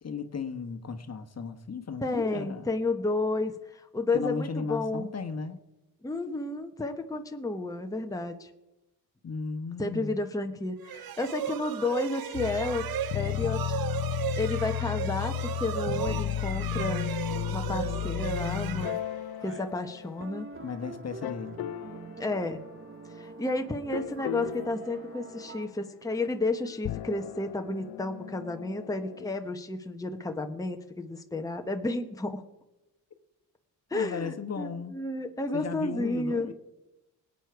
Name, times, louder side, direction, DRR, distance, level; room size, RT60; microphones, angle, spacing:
voice 1, 0.0-2.7 4.1-5.6 9.2-10.2 20.6-21.6 33.9-35.0 35.5-36.5, left 5 dB, 40° left, 1.3 m, -35 dB
voice 2, 2.0-5.1 6.0-8.5 9.8-12.8 13.1-13.8 14.4-17.1 17.5-19.0 19.4-20.5 22.2-22.6 23.1-32.4 33.9-36.5, left 2 dB, 10° left, 1.0 m, -32 dB
sound 1, 10.8-19.6, right 10 dB, 65° right, 0.8 m, -36 dB
sound 2, 12.3-20.7 21.2-22.1 23.9-25.6 26.7-29.3, left 14 dB, 70° left, 0.5 m, -34 dB
sound 3, 17.3-19.1 19.4-25.7, right 3 dB, 35° right, 1.0 m, -45 dB
20.0 x 8.5 x 4.6 m
cardioid pair, 75°, 39 cm